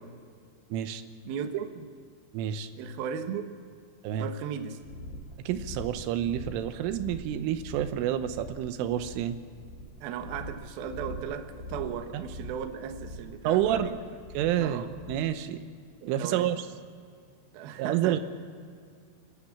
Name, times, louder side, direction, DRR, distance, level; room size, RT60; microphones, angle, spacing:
voice 1, 0.7-1.0 2.3-2.7 4.0-4.3 5.5-9.4 12.1-12.2 13.4-13.9 14.3-15.6 16.1-16.7 17.8-18.2, right 11 dB, 90° right, 10 dB, 3.5 m, -29 dB
voice 2, 1.2-1.9 2.8-3.4 4.2-4.8 10.0-14.0 14.6-14.9 16.0-16.5 17.5-18.2, right 8 dB, 70° right, 7 dB, 2.5 m, -36 dB
sound 1, 4.8-15.3, left 1 dB, 85° left, 5.6 m, -43 dB
30.0 x 12.0 x 7.3 m, 2.2 s
omnidirectional pair, 5.6 m